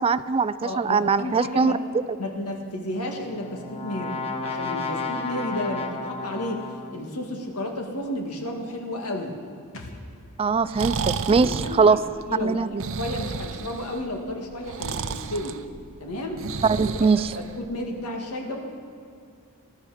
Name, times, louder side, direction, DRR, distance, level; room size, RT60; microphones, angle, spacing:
voice 1, 0.0-1.7 10.4-12.0 12.4-12.8 16.6-17.4, right 5 dB, 25° right, 15 dB, 0.3 m, -21 dB
voice 2, 0.6-1.8 2.2-9.4 11.3-12.0 12.3-12.6 13.0-15.6 16.0-16.4 16.8-18.6, left 1 dB, 90° left, 2 dB, 1.9 m, -32 dB
Brass instrument, 2.9-7.1, left 3 dB, 25° left, 1.3 m, -33 dB
sound 1, 9.7-13.3 13.5-13.6, left 1 dB, 65° left, 1.5 m, -48 dB
Breathing, 10.5-17.9, right 5 dB, 65° right, 0.6 m, -33 dB
20.0 x 12.5 x 4.9 m, 2.3 s
head